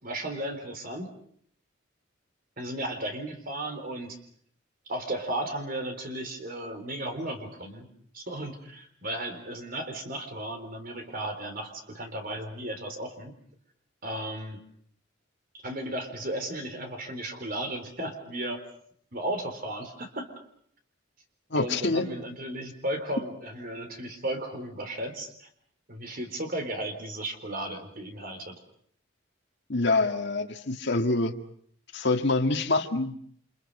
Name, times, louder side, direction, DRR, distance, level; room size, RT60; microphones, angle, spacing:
voice 1, 0.0-1.1 2.6-4.2 4.9-7.9 8.1-13.3 14.0-14.6 15.6-18.6 19.1-20.3 21.5-25.5 25.9-28.6, right 1 dB, 45° right, 6 dB, 3.9 m, -35 dB
voice 2, 21.5-22.0 29.7-31.3 31.9-33.2, left 2 dB, 60° left, 4 dB, 1.9 m, -26 dB
29.0 x 27.0 x 5.5 m, 0.63 s
head